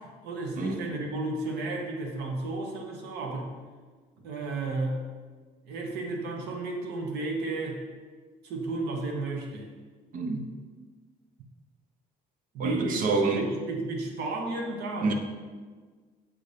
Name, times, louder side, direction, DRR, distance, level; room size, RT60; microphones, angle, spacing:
voice 1, 0.0-3.5 4.2-5.0 5.6-7.8 8.4-9.7 12.5-15.1, right 2 dB, 80° right, 1 dB, 1.1 m, -33 dB
voice 2, 10.1-10.5 12.6-13.5 15.0-15.1, right 3 dB, 55° right, 5 dB, 0.8 m, -27 dB
7.5 x 2.8 x 5.0 m, 1.4 s
cardioid pair, 110°, 17 cm